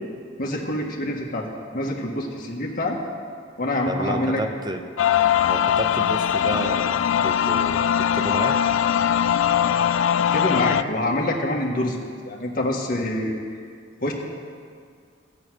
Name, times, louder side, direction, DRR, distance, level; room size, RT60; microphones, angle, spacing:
voice 1, 0.4-1.5 1.7-3.0 3.6-4.4 10.1-13.4 14.0-14.1, left 1 dB, 50° left, 0 dB, 1.7 m, -26 dB
voice 2, 3.9-4.8 5.5-8.6, right 1 dB, 25° right, 6 dB, 0.7 m, -31 dB
sound 1, 5.0-10.8, left 9 dB, 85° left, 0.3 m, -21 dB
14.0 x 9.1 x 6.3 m, 2.1 s
head